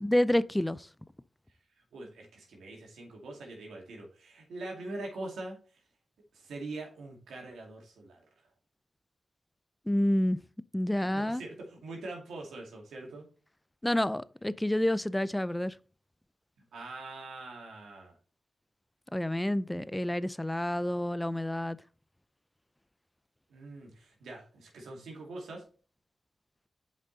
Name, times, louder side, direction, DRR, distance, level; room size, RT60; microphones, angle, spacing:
voice 1, 0.0-0.9 9.9-10.4 10.7-11.4 13.8-15.8 19.1-21.8, left 1 dB, 10° left, 0.5 m, -28 dB
voice 2, 1.9-5.8 6.3-8.2 10.9-13.3 16.7-18.2 23.5-25.7, right 2 dB, 90° right, 2.3 m, -43 dB
7.4 x 5.3 x 3.9 m
cardioid pair, 45°, 0 cm